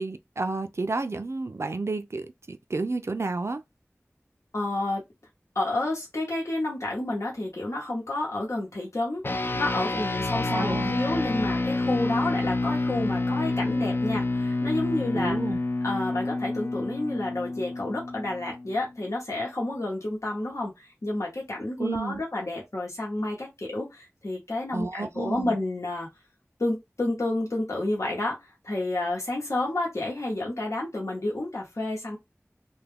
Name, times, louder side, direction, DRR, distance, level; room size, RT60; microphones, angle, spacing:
voice 1, 0.0-3.6 10.3-11.0 15.1-15.6 21.8-22.2 24.7-25.6, right 3 dB, 60° right, 0.3 m, -31 dB
voice 2, 4.5-5.0 5.5-15.4 15.8-26.1 26.6-32.2, left 2 dB, 75° left, 0.9 m, -30 dB
sound 1, 9.2-18.9, left 2 dB, 45° left, 0.4 m, -28 dB
2.3 x 2.2 x 3.3 m
wide cardioid pair, 45°, 5 cm